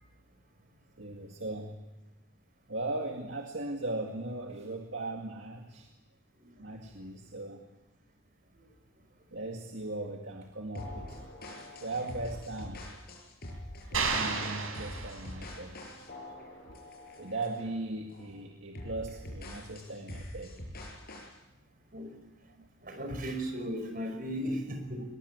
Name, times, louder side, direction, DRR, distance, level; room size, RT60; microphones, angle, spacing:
voice 1, 1.0-1.8 2.7-5.9 6.6-7.6 9.3-11.2 11.8-12.8 13.9-15.8 16.7-16.8 17.2-20.6 22.5-22.7, right 2 dB, 60° right, 2 dB, 2.2 m, -38 dB
sound 1, 10.7-17.7 18.1-18.3 18.7-21.3, left 1 dB, 50° left, 7.3 m, -44 dB
sound 2, 13.9-15.7, right 4 dB, 80° right, 5.0 m, -32 dB
voice 2, 22.8-25.0, equal, 45° right, 6 dB, 5.4 m, -35 dB
22.5 x 22.0 x 8.3 m, 0.99 s
head